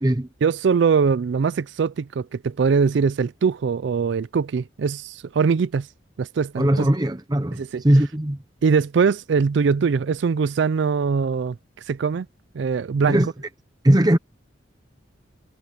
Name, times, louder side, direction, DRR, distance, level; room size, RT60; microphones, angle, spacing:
voice 1, 0.4-5.9 6.2-6.9 7.6-7.8 8.6-11.6 11.9-12.3 12.5-13.2, right 5 dB, 65° right, 0.4 m, -22 dB
voice 2, 6.6-8.4 13.1-13.3 13.8-14.2, right 1 dB, 20° right, 0.9 m, -19 dB
head